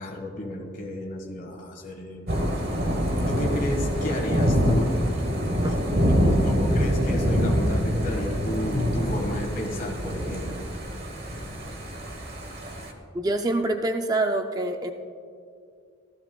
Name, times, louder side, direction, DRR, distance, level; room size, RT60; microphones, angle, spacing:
voice 1, 0.0-2.5 3.3-4.9 5.6-10.6, left 1 dB, 45° left, 0 dB, 1.7 m, -32 dB
Thunder / Rain, 2.3-12.9, equal, 55° right, 1.2 m, -25 dB
voice 2, 13.1-14.9, right 2 dB, 20° right, 5 dB, 0.4 m, -26 dB
15.0 x 13.0 x 2.3 m, 2.3 s
head